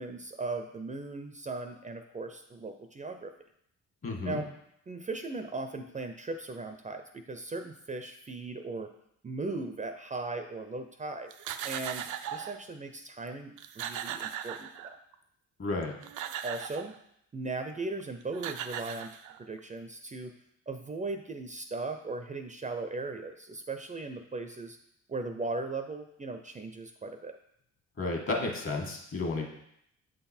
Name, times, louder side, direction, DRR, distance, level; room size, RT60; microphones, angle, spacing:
voice 1, 0.0-3.3 4.2-4.5 4.9-8.9 9.2-11.3 11.6-15.0 16.4-17.0 17.3-20.3 20.7-24.8 25.1-27.4, right 3 dB, 25° right, 7 dB, 0.5 m, -38 dB
voice 2, 4.0-4.4 15.6-15.9 28.0-29.5, left 3 dB, 45° left, 1 dB, 1.7 m, -32 dB
sound 1, 11.3-12.6 13.3-13.4 13.6-15.1 15.8-17.0 18.0-18.1 18.3-19.6, right 9 dB, 75° right, 0.5 m, -38 dB
7.6 x 4.0 x 4.3 m, 0.74 s
cardioid pair, 90°, 30 cm